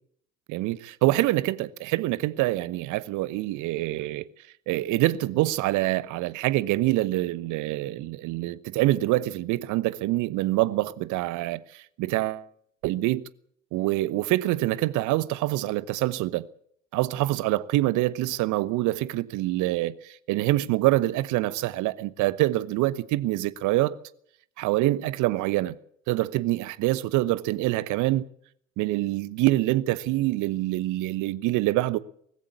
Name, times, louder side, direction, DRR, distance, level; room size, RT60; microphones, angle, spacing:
voice 1, 0.5-4.3 4.7-12.5 12.8-13.2 13.7-16.5 16.9-24.0 24.6-25.7 26.1-28.2 28.8-32.0, right 17 dB, 50° right, 1.1 m, -25 dB
19.0 x 16.0 x 8.5 m
figure-of-eight pair, 60°, 39 cm